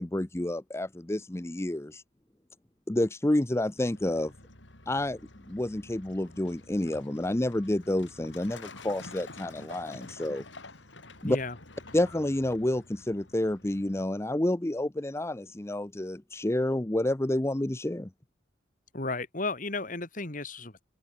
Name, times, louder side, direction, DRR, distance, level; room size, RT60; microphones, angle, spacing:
voice 1, 0.0-2.0 2.9-4.3 4.9-5.2 5.5-10.4 11.2-11.4 11.9-18.1, left 1 dB, 15° left, 0.6 m, -29 dB
Truck, 3.8-14.0, left 3 dB, 70° left, 5.5 m, -49 dB
voice 2, 11.2-11.5 18.9-20.8, left 3 dB, 45° left, 2.6 m, -34 dB
open air
head